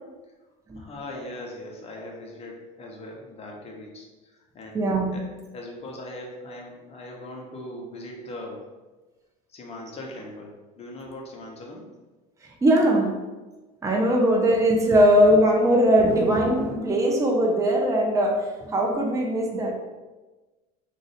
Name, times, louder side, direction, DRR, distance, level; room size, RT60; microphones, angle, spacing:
voice 1, 0.8-4.8 5.1-5.2 5.5-8.6 9.5-11.8, left 1 dB, 30° left, 0 dB, 0.8 m, -40 dB
voice 2, 4.7-5.1 12.6-13.1 13.8-19.7, equal, 15° right, -1 dB, 0.6 m, -20 dB
2.5 x 2.4 x 4.1 m, 1.2 s
supercardioid pair, 100°, 20 cm